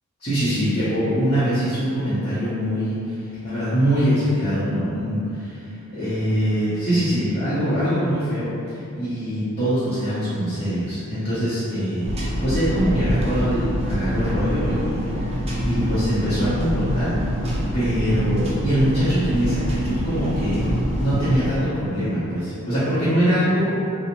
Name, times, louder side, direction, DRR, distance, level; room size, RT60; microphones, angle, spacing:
voice 1, 0.2-12.1 12.4-17.2 17.7-23.7, equal, 25° left, -14 dB, 0.6 m, -23 dB
sound 1, 12.0-21.6, equal, 25° right, 0.4 m, -25 dB
2.5 x 2.0 x 2.9 m, 2.6 s
head